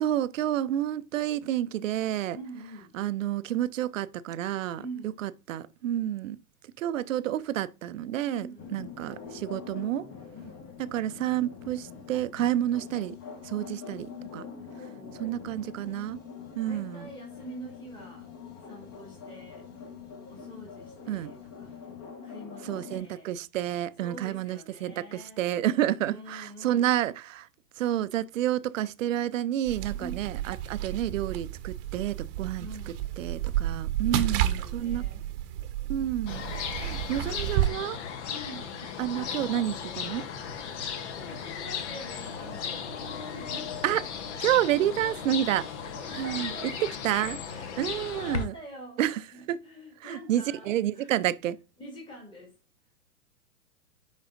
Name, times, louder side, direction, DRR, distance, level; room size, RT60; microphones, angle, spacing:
voice 1, 0.0-2.4 2.9-4.8 5.2-6.4 6.8-8.5 8.7-10.1 10.9-13.2 13.4-14.4 15.2-16.2 16.6-17.1 21.1-21.3 22.6-27.5 27.8-32.7 33.2-35.0 35.9-36.4 36.7-38.0 39.0-40.2 43.8-44.0 44.4-45.7 46.1-46.5 47.0-47.4 47.8-48.5 49.0-49.2 49.5-49.6 50.0-51.6, right 12 dB, 55° right, 0.6 m, -29 dB
voice 2, 2.3-3.0 4.8-5.2 8.3-8.9 10.3-10.6 14.8-15.8 16.6-18.3 18.6-19.7 20.3-21.7 22.2-23.3 24.0-25.4 26.0-27.0 29.9-30.3 32.6-33.0 34.0-35.3 38.2-38.8 39.1-39.4 41.1-43.8 45.9-47.0 47.5-49.0 49.3-51.1 51.8-52.6, right 1 dB, 10° left, 2.0 m, -46 dB
sound 1, 8.6-23.0, left 6 dB, 30° left, 1.6 m, -44 dB
sound 2, 29.6-37.7, right 12 dB, 35° right, 0.9 m, -31 dB
sound 3, 36.3-48.5, left 6 dB, 45° left, 1.1 m, -36 dB
10.5 x 4.0 x 2.6 m
figure-of-eight pair, 110°, 47 cm